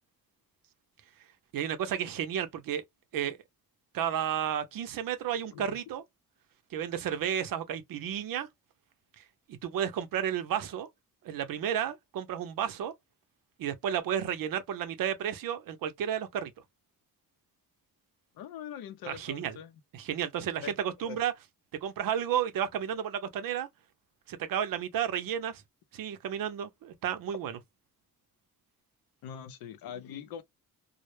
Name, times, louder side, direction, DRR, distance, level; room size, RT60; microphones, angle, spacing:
voice 1, 1.5-2.8 3.1-3.4 3.9-6.0 6.7-8.5 9.2-9.3 9.5-10.9 11.2-12.9 13.6-16.5 19.0-19.6 19.9-21.3 21.8-23.7 24.3-25.6 25.9-27.6, right 9 dB, 70° right, 0.6 m, -32 dB
voice 2, 18.3-19.8 20.6-20.8 21.0-21.2 29.2-30.4, left 8 dB, 85° left, 0.5 m, -42 dB
2.1 x 2.0 x 2.9 m
cardioid pair, 115°, 35 cm